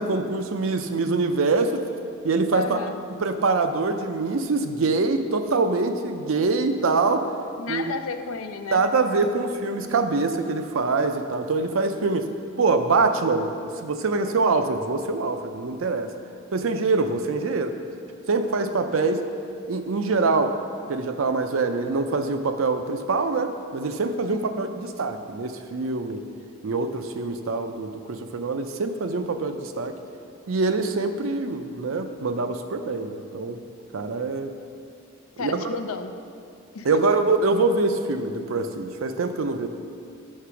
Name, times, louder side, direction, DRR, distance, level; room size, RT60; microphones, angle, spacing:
voice 1, 0.0-1.8 2.2-2.8 3.2-7.3 7.7-7.9 8.7-12.3 12.6-16.1 16.5-17.8 18.3-19.2 19.7-20.5 20.9-26.2 26.6-29.9 30.5-33.6 33.9-34.5 35.4-35.7 36.8-39.7, right 3 dB, 70° right, 8 dB, 0.5 m, -24 dB
voice 2, 2.5-3.0 7.6-8.8 9.2-9.4 9.9-10.0 24.3-24.6 35.4-36.1 36.7-37.1, left 4 dB, 80° left, 8 dB, 0.5 m, -32 dB
6.5 x 5.9 x 5.7 m, 2.4 s
head